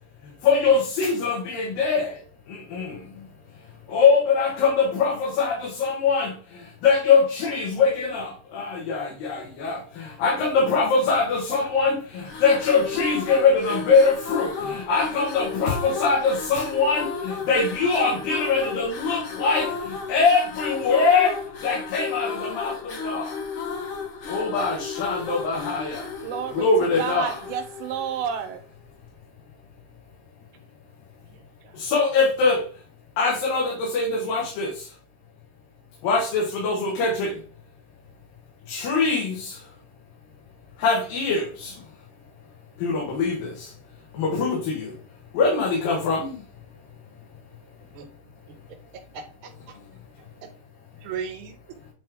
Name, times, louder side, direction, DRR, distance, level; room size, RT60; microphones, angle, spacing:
voice 1, 0.4-2.2 2.5-3.0 3.9-21.4 21.6-23.3 24.3-26.1 26.5-27.4 31.7-32.6 33.2-34.9 36.0-37.3 38.7-39.6 40.8-41.7 42.8-43.7 44.1-44.9 45.3-46.4, left 4 dB, 85° left, 3.2 m, -23 dB
sound 1, 12.2-28.6, left 5 dB, 60° left, 1.4 m, -34 dB
voice 2, 26.2-28.6, right 8 dB, 85° right, 2.6 m, -30 dB
voice 3, 31.3-31.8 47.9-48.1 49.1-49.8 50.4-50.5 51.0-51.8, right 7 dB, 65° right, 1.3 m, -37 dB
8.6 x 3.8 x 3.5 m
omnidirectional pair, 3.9 m